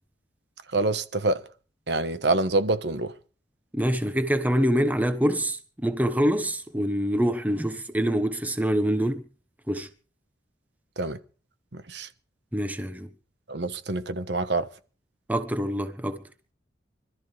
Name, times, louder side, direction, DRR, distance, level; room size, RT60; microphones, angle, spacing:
voice 1, 0.7-1.4 1.9-3.1 11.0-11.2 11.9-12.1 13.5-14.7, right 2 dB, 70° right, 1.2 m, -26 dB
voice 2, 3.7-9.2 9.7-9.9 12.5-13.1 15.3-16.2, equal, 10° right, 1.2 m, -25 dB
25.5 x 13.5 x 3.4 m
head